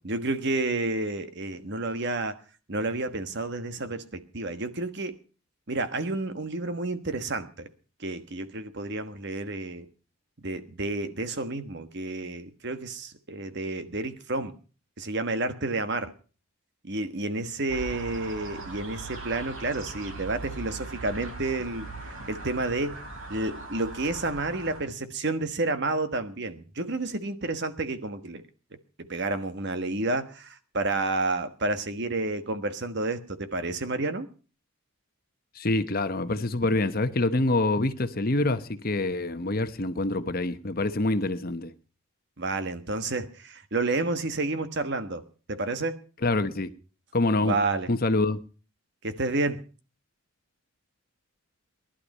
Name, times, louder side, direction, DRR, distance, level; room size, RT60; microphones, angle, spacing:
voice 1, 0.0-2.4 2.7-5.2 5.7-7.7 8.0-9.9 10.4-14.6 15.0-16.1 16.8-21.9 22.3-23.0 23.3-28.4 29.0-34.3 42.4-45.2 45.5-46.0 47.4-47.9 49.0-49.6, right 2 dB, 50° right, 1.3 m, -30 dB
sound 1, 17.7-24.8, right 3 dB, 70° right, 4.3 m, -40 dB
voice 2, 35.5-41.7 46.2-46.7 47.1-47.5 47.9-48.4, left 2 dB, 40° left, 1.0 m, -26 dB
19.0 x 11.5 x 5.4 m
head